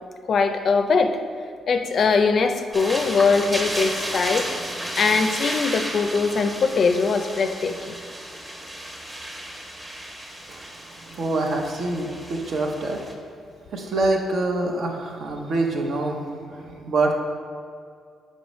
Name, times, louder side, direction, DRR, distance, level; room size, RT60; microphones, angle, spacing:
voice 1, 0.3-1.2 1.7-4.5 5.0-8.0, left 4 dB, 55° left, 7 dB, 0.4 m, -21 dB
sound 1, 2.7-13.1, right 1 dB, 20° right, 1.0 m, -33 dB
voice 2, 10.5-13.0 13.7-17.1, right 2 dB, 65° right, 2 dB, 0.8 m, -26 dB
6.3 x 5.3 x 3.1 m, 2.3 s
cardioid pair, 75°, 0 cm